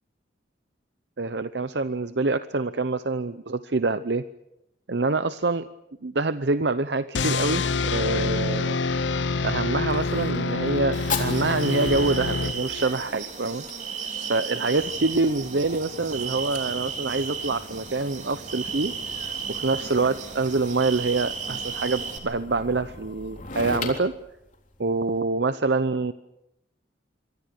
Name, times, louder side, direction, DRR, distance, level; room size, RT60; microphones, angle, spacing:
voice 1, 1.2-4.3 4.9-5.7 6.0-8.8 9.4-13.6 14.3-18.9 19.5-24.1 24.8-26.1, right 3 dB, 65° right, 12 dB, 0.8 m, -26 dB
sound 1, 7.1-13.0, left 4 dB, 75° left, 0.8 m, -26 dB
Fire, 9.0-25.2, left 4 dB, 45° left, 3.6 m, -40 dB
sound 2, 10.9-22.2, right 6 dB, 40° right, 3.7 m, -34 dB
26.5 x 24.0 x 6.6 m, 0.87 s
head